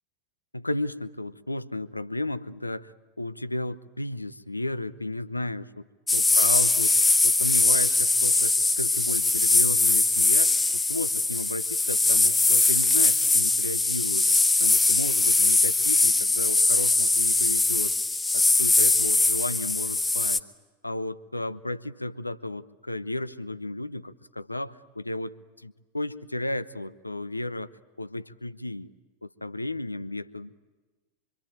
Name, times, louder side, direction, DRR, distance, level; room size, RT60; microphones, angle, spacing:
voice 1, 0.5-5.9 6.1-7.0 7.2-14.3 14.6-17.9 18.3-20.4 20.8-27.7 28.0-28.9 29.2-30.5, left 2 dB, 85° left, 16 dB, 0.8 m, -33 dB
sound 1, 6.1-20.4, left 3 dB, 10° left, 1.0 m, -22 dB
25.5 x 25.0 x 9.1 m, 1.3 s
figure-of-eight pair, 90°, 0 cm